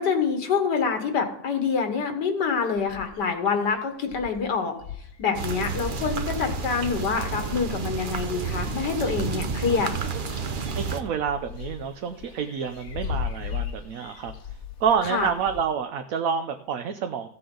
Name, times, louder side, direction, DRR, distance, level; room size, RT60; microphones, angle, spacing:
voice 1, 0.0-4.7 5.2-9.9 15.1-15.3, left 5 dB, 85° left, 6 dB, 2.0 m, -26 dB
sound 1, 2.8-3.4 3.7-3.8 4.0-8.1 8.6-9.5 9.7-15.6, left 7 dB, 60° left, 1.3 m, -38 dB
sound 2, 5.3-11.0, right 5 dB, 45° right, 0.7 m, -30 dB
voice 2, 10.8-14.3 14.8-17.3, right 7 dB, 65° right, 7 dB, 1.0 m, -28 dB
15.0 x 7.7 x 3.9 m, 0.72 s
omnidirectional pair, 1.8 m